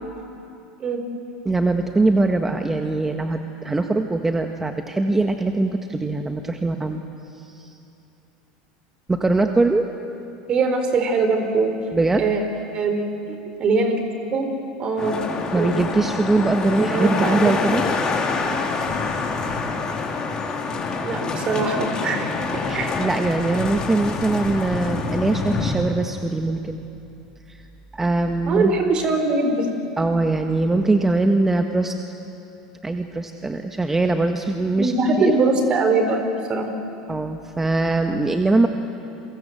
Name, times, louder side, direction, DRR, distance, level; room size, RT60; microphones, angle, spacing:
voice 1, 1.4-7.0 7.3-7.8 9.1-9.9 11.9-12.2 15.5-17.8 22.7-26.8 27.5-27.6 27.9-28.7 30.0-31.9 32.8-34.9 35.2-35.3 37.1-38.7, right 2 dB, 15° right, 5 dB, 1.5 m, -22 dB
voice 2, 10.5-11.8 12.2-12.4 12.7-14.0 14.3-14.5 14.8-15.2 15.5-15.8 16.8-17.8 21.0-22.9 28.5-29.7 34.8-36.2 36.5-36.7, right 3 dB, 40° right, 6 dB, 4.3 m, -22 dB
sound 1, 15.0-25.8, left 4 dB, 30° left, 4.2 m, -26 dB
29.0 x 24.0 x 7.9 m, 2.7 s
hypercardioid pair, 85°, 2 cm